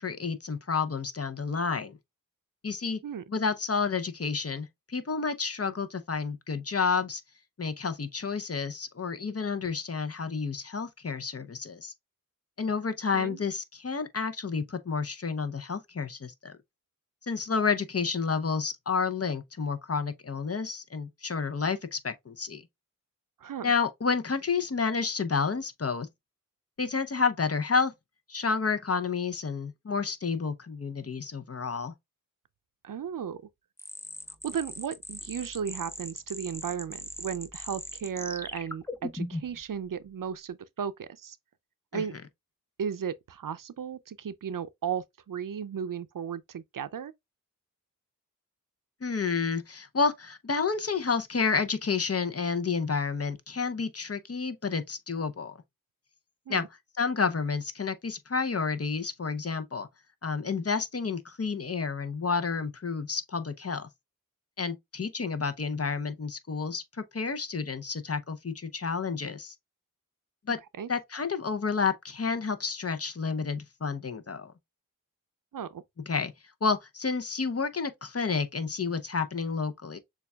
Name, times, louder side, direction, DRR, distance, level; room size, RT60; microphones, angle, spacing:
voice 1, 0.0-2.0 2.6-3.0 3.3-7.2 7.6-11.9 12.6-16.5 17.2-22.6 23.6-26.1 26.8-27.9 28.3-31.9 41.9-42.0 49.0-55.5 56.5-56.6 57.0-59.9 60.2-63.9 64.6-66.8 67.1-69.5 70.5-70.6 70.9-74.5 76.1-76.3 76.6-80.0, left 5 dB, 45° left, 0.7 m, -30 dB
voice 2, 23.4-23.7 32.8-33.4 34.4-41.4 41.9-42.2 42.8-47.1 56.5-56.6 70.8-70.9 75.5-75.8, right 7 dB, 75° right, 0.5 m, -35 dB
sound 1, 33.8-39.6, left 1 dB, 5° left, 0.8 m, -39 dB
6.7 x 2.4 x 2.2 m
wide cardioid pair, 45°, 33 cm